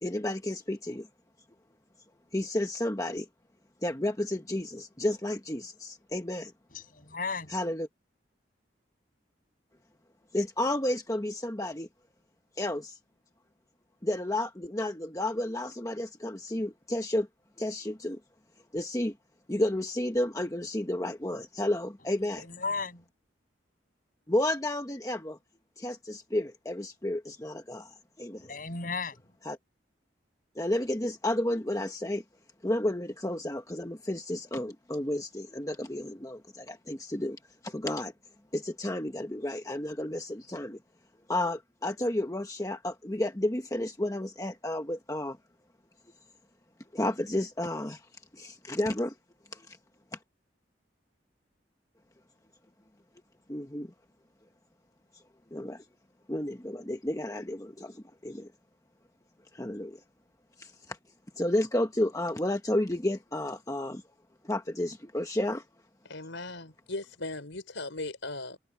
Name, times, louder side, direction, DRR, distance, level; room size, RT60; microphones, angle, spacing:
voice 1, 0.0-1.1 2.3-3.3 3.8-6.5 7.5-7.9 10.3-11.9 12.6-13.0 14.0-17.3 17.6-18.2 18.7-19.1 19.5-22.4 24.3-25.4 25.8-28.5 29.4-29.6 30.6-32.2 32.6-38.1 38.5-40.8 41.3-45.4 46.9-48.1 48.3-49.1 49.5-49.8 53.5-53.9 55.5-55.8 56.3-58.5 59.5-60.0 60.6-61.0 61.4-64.0 64.4-65.6, left 1 dB, 15° left, 1.1 m, -31 dB
voice 2, 6.7-7.5 22.4-23.0 28.4-29.2, left 4 dB, 45° left, 7.8 m, -35 dB
voice 3, 66.0-68.6, left 2 dB, 80° left, 5.1 m, -38 dB
head